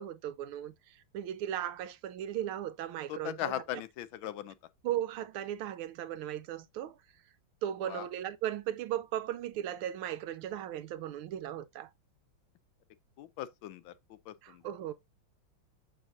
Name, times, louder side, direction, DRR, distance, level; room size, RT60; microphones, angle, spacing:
voice 1, 0.0-3.6 4.8-7.0 7.6-11.9 14.4-14.9, right 11 dB, 85° right, 1.5 m, -37 dB
voice 2, 3.1-4.5 7.8-8.1 13.2-14.6, left 12 dB, 75° left, 1.3 m, -39 dB
7.0 x 6.3 x 2.6 m
omnidirectional pair, 2.3 m